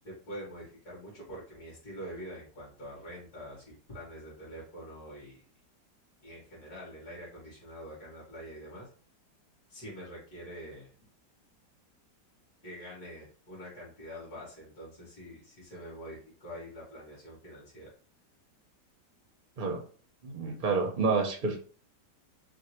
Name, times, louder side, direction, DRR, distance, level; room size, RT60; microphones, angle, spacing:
voice 1, 0.0-5.4 6.2-8.9 9.7-10.9 12.6-17.9, equal, 60° left, -9 dB, 2.6 m, -45 dB
voice 2, 20.2-21.6, right 4 dB, 50° right, 1 dB, 0.5 m, -29 dB
6.3 x 2.2 x 3.0 m, 0.43 s
omnidirectional pair, 1.9 m